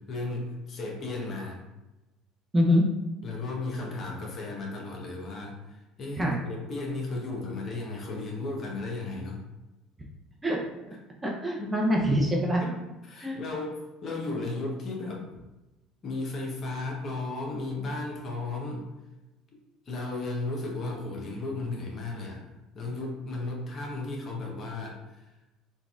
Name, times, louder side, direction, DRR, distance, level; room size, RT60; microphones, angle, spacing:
voice 1, 0.0-1.6 3.2-9.4 11.6-11.9 12.6-12.8 13.0-15.3 16.0-18.9 19.9-22.4 22.7-25.2, left 2 dB, 45° left, -1 dB, 0.9 m, -35 dB
voice 2, 2.5-2.9 6.2-6.4 10.4-10.6 11.2-12.6 13.2-13.4, equal, 20° right, -1 dB, 0.7 m, -24 dB
3.9 x 2.4 x 2.4 m, 1.0 s
hypercardioid pair, 70°, 0 cm